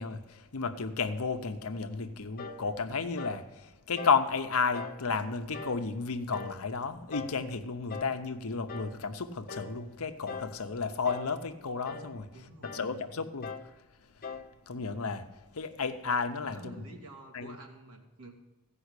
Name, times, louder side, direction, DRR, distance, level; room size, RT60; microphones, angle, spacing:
voice 1, 0.0-12.3 12.6-13.5 14.7-15.3 15.5-16.7 17.3-17.6, left 5 dB, 75° left, 0.8 m, -32 dB
sound 1, 2.4-2.7 3.2-3.5 4.0-4.3 4.7-5.0 5.5-5.9 6.3-6.6 7.1-7.4 7.9-8.2 8.7-9.0 9.5-9.8 10.3-10.6 11.1-11.4 11.9-12.1 12.6-12.9 13.4-13.7 14.2-14.5, left 5 dB, 40° left, 0.7 m, -41 dB
voice 2, 12.3-13.1 16.5-18.3, right 2 dB, 75° right, 2.0 m, -49 dB
15.0 x 5.5 x 8.2 m
head